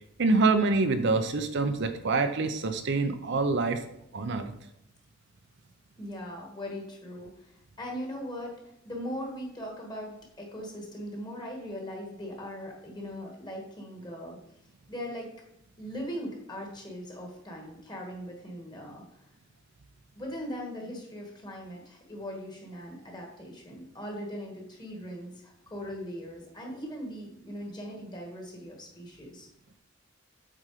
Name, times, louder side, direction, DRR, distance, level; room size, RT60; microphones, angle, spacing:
voice 1, 0.2-3.8 4.1-4.5, right 3 dB, 60° right, 8 dB, 0.6 m, -26 dB
voice 2, 6.0-7.5 7.8-8.5 8.8-14.4 14.9-15.3 15.8-19.2 20.1-29.5, equal, 20° left, 0 dB, 1.7 m, -39 dB
7.6 x 4.4 x 4.9 m, 0.78 s
head